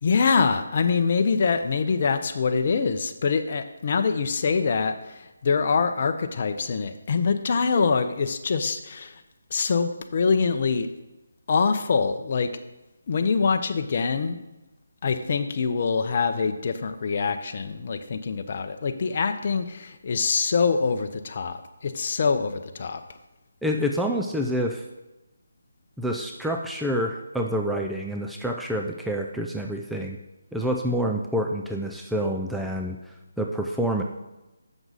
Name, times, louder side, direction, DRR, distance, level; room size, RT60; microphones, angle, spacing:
voice 1, 0.0-9.1 9.5-10.9 11.5-12.5 13.1-14.4 15.0-23.0, left 5 dB, 45° left, 7 dB, 0.6 m, -24 dB
voice 2, 23.6-24.8 26.0-30.2 30.5-34.0, equal, ahead, 0 dB, 0.4 m, -27 dB
7.8 x 6.1 x 4.0 m, 1.0 s
figure-of-eight pair, 160°, 0 cm